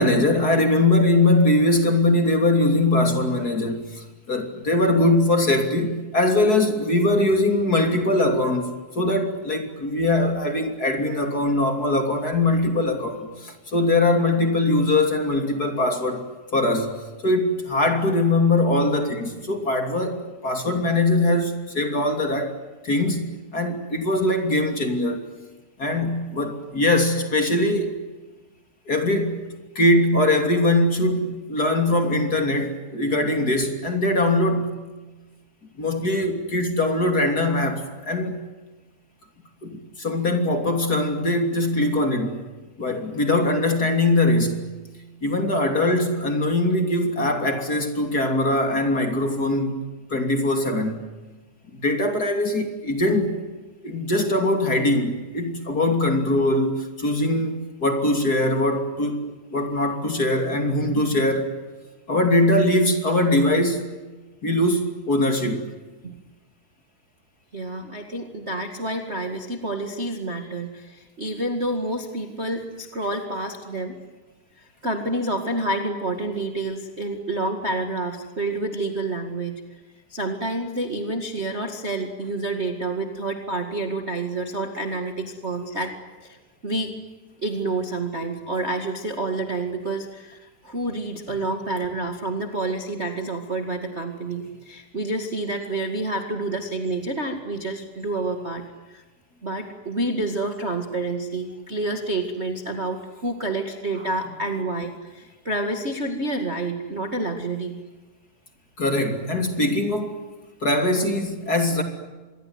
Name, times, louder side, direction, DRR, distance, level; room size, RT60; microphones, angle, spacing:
voice 1, 0.0-22.5 22.8-25.2 25.8-28.0 28.9-29.5 29.7-34.8 35.8-38.4 39.6-42.4 42.8-44.6 45.2-49.8 50.1-51.0 51.7-53.4 53.8-59.2 59.5-61.5 62.1-63.8 64.4-65.7 108.8-110.2 110.6-111.8, left 1 dB, 25° left, 2.8 m, -22 dB
voice 2, 67.5-74.0 74.6-79.5 80.1-85.9 86.2-86.4 86.6-86.9 87.4-98.6 98.9-99.0 99.4-107.8, right 2 dB, 45° right, 0.8 m, -28 dB
26.5 x 22.0 x 9.6 m
omnidirectional pair, 5.0 m